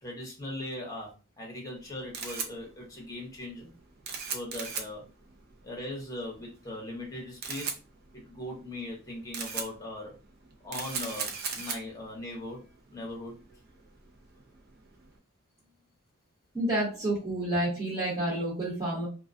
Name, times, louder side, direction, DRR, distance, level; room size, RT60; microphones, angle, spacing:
voice 1, 0.0-3.7 4.3-5.0 5.6-7.7 8.1-10.1 10.6-13.4, left 1 dB, 15° left, -2 dB, 0.8 m, -39 dB
Camera, 1.8-15.1, right 5 dB, 50° right, 0.5 m, -40 dB
voice 2, 16.5-19.1, right 1 dB, 20° right, -8 dB, 1.0 m, -29 dB
2.3 x 2.2 x 2.5 m, 0.33 s
head